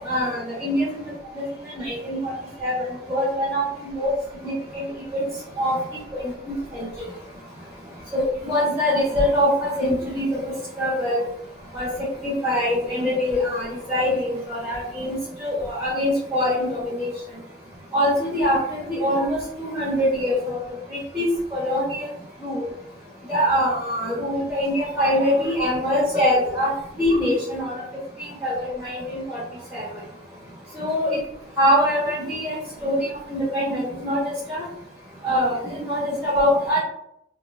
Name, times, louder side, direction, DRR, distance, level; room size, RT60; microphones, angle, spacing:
voice 1, 0.0-1.0 1.3-1.4 1.7-2.3 2.6-4.1 4.4-4.8 5.1-5.2 5.6-5.8 6.1-6.9 8.1-10.4 10.8-11.2 11.7-11.9 12.2-17.1 17.9-20.6 20.9-22.1 22.4-22.7 23.3-26.7 27.0-27.7 28.2-29.4 29.7-29.8 30.7-31.1 31.6-34.6 35.2-36.8, equal, 15° right, -9 dB, 0.9 m, -23 dB
2.7 x 2.1 x 3.2 m, 0.76 s
head